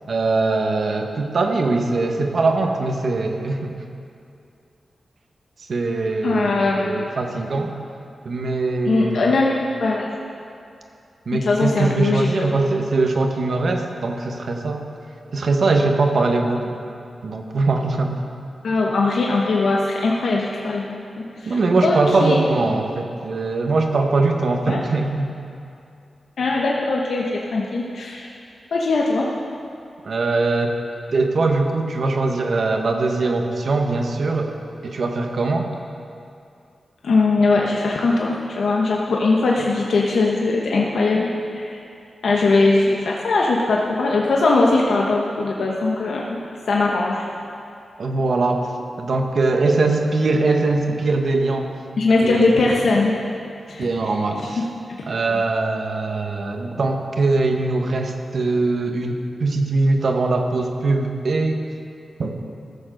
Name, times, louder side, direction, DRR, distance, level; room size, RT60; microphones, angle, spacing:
voice 1, 0.1-3.7 5.7-7.7 8.2-9.2 11.3-14.8 15.3-16.8 17.2-18.2 21.5-25.4 30.0-30.8 31.1-34.5 34.8-35.7 48.0-48.7 49.0-51.7 52.2-52.5 53.8-54.6 55.1-61.6 62.2-62.4, right 3 dB, 65° right, 3 dB, 1.2 m, -21 dB
voice 2, 6.2-7.0 8.8-10.1 11.5-12.8 18.6-21.5 21.8-22.4 24.6-24.8 26.4-28.3 28.7-29.3 37.0-41.8 42.2-46.4 46.7-47.2 52.0-53.1 53.7-53.9, left 3 dB, 80° left, -2 dB, 1.1 m, -20 dB
15.0 x 6.6 x 6.4 m, 2.5 s
cardioid pair, 75°, 0 cm